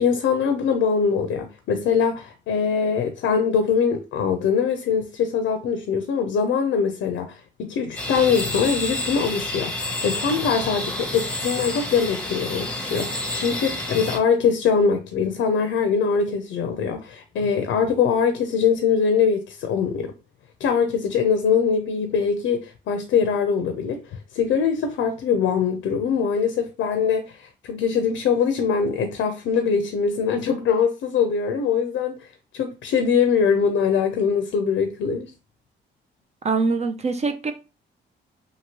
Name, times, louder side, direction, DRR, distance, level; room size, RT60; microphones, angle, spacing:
voice 1, 0.0-20.1 20.6-32.2 32.5-35.3, left 6 dB, 75° left, 0.5 m, -22 dB
sound 1, 8.0-14.2, left 2 dB, 5° left, 0.8 m, -29 dB
voice 2, 36.4-37.5, right 4 dB, 35° right, 0.4 m, -23 dB
2.8 x 2.6 x 2.9 m
cardioid pair, 90°, 20 cm